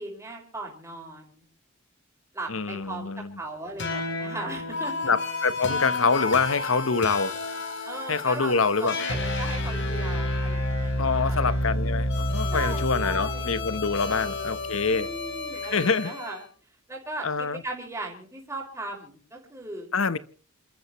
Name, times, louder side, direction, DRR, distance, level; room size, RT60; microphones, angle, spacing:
voice 1, 0.0-1.4 2.3-5.1 7.8-11.5 12.5-13.5 14.0-14.6 14.9-16.4 16.9-17.3 17.6-19.9, right 2 dB, 15° right, 0 dB, 5.1 m, -38 dB
voice 2, 2.5-3.3 5.0-7.3 8.1-9.0 11.0-15.1 15.7-16.1 17.2-17.6 19.9-20.2, left 4 dB, 70° left, 15 dB, 1.1 m, -25 dB
sound 1, 3.8-16.3, left 2 dB, 55° left, 4.3 m, -30 dB
28.5 x 14.0 x 3.1 m, 0.42 s
head